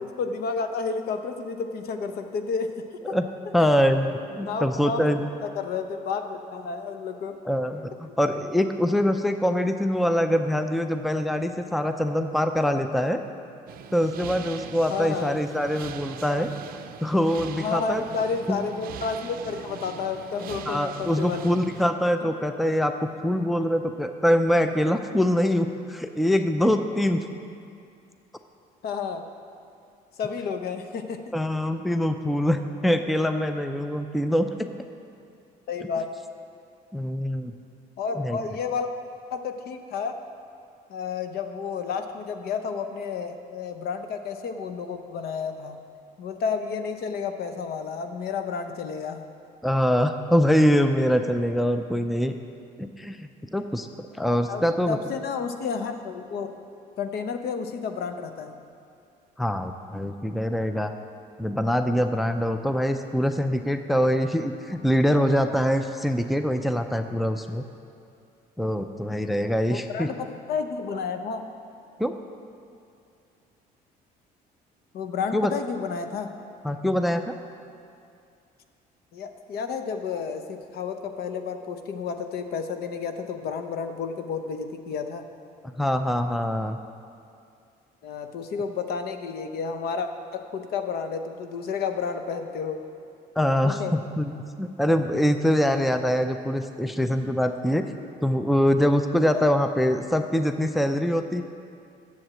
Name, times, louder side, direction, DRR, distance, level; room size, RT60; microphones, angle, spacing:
voice 1, 0.0-2.7 3.1-3.2 4.3-7.4 14.9-15.4 17.6-21.4 28.8-29.2 30.2-31.3 35.7-36.1 38.0-38.9 39.3-40.2 40.9-45.8 46.2-49.2 54.5-56.5 57.0-58.6 69.7-71.4 74.9-76.3 79.1-85.2 88.0-92.8 93.6-94.0 95.7-95.8 99.3-99.5, left 5 dB, 65° left, 7 dB, 0.8 m, -31 dB
voice 2, 3.5-5.3 7.4-13.2 13.9-16.5 17.0-18.0 18.5-18.6 20.7-27.3 31.3-34.7 36.9-37.5 38.2-38.4 49.6-52.3 52.8-55.0 59.4-60.9 61.4-67.7 68.6-70.1 72.0-72.2 75.3-75.5 76.6-77.3 85.8-86.8 93.4-97.9 98.2-101.4, equal, ahead, 8 dB, 0.4 m, -24 dB
sound 1, 13.7-21.9, right 9 dB, 60° right, 0.5 m, -41 dB
7.8 x 7.2 x 7.6 m, 2.4 s
cardioid pair, 110°, 17 cm